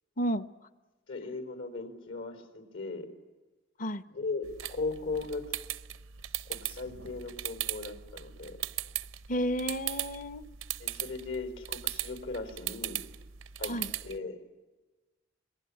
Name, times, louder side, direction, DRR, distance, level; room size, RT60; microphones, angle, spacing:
voice 1, 0.2-0.5 3.8-4.0 9.3-10.4 13.6-13.9, equal, 40° left, 14 dB, 0.9 m, -31 dB
voice 2, 1.1-3.1 4.1-5.4 6.5-8.6 10.8-13.0 13.6-13.7 14.0-14.4, left 3 dB, 75° left, 9 dB, 4.4 m, -37 dB
sound 1, 4.4-14.2, right 13 dB, 85° right, 0.8 m, -39 dB
27.0 x 20.5 x 9.9 m, 1.2 s
head